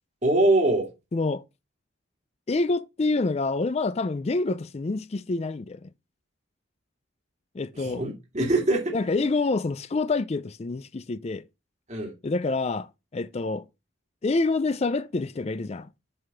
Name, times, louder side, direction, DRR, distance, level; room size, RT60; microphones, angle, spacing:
voice 1, 0.2-0.9 7.8-8.9 11.9-12.1, right 2 dB, 35° right, 2.7 m, -23 dB
voice 2, 1.1-1.4 2.5-5.9 7.5-8.0 8.9-11.4 12.2-12.9 13.1-13.6 14.2-15.9, left 3 dB, 30° left, 0.4 m, -27 dB
8.0 x 4.0 x 5.6 m
head